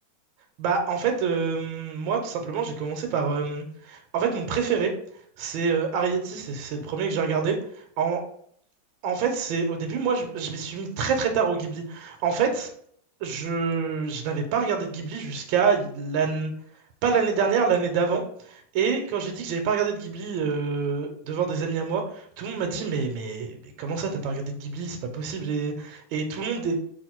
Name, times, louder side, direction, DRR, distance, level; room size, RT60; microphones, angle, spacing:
voice 1, 0.6-4.9 5.4-8.2 9.0-12.7 13.2-16.5 17.0-26.8, right 5 dB, 75° right, 4 dB, 1.3 m, -27 dB
3.5 x 2.5 x 4.3 m, 0.65 s
omnidirectional pair, 2.2 m